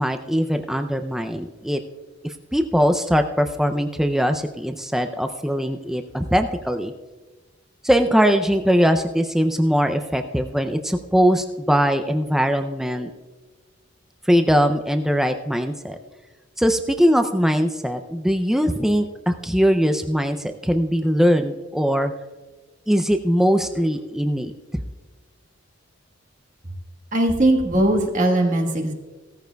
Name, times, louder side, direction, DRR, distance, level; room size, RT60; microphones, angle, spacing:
voice 1, 0.0-1.8 2.2-6.9 7.8-13.1 14.3-16.0 16.6-22.1 22.9-24.5, equal, ahead, 7 dB, 0.4 m, -21 dB
voice 2, 27.1-28.9, right 1 dB, 40° right, 2 dB, 1.3 m, -19 dB
17.0 x 14.0 x 2.3 m, 1.3 s
head